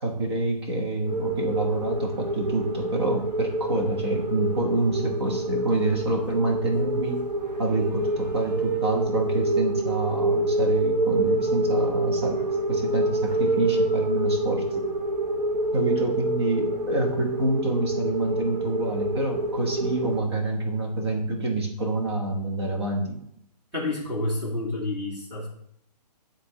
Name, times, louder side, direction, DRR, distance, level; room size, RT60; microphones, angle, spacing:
voice 1, 0.0-7.2 7.6-12.4 12.7-14.8 15.7-23.2, right 2 dB, 40° right, 1 dB, 1.4 m, -27 dB
sound 1, 1.1-20.2, right 1 dB, 80° right, 1.4 m, -27 dB
voice 2, 23.7-25.5, left 2 dB, 5° right, -7 dB, 0.9 m, -29 dB
10.5 x 3.6 x 3.1 m, 0.70 s
hypercardioid pair, 180°, 21 cm